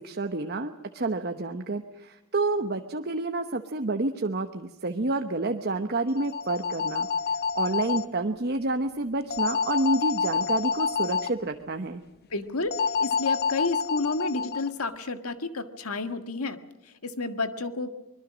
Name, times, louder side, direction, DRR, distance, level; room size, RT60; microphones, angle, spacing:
voice 1, 0.0-7.1 7.5-12.0, right 2 dB, 50° right, 6 dB, 1.0 m, -29 dB
sound 1, 6.1-8.0 9.3-11.3 12.7-14.7, left 5 dB, 45° left, 0.8 m, -28 dB
voice 2, 12.3-17.9, left 3 dB, 90° left, 8 dB, 1.7 m, -31 dB
24.5 x 21.5 x 6.3 m, 1.0 s
head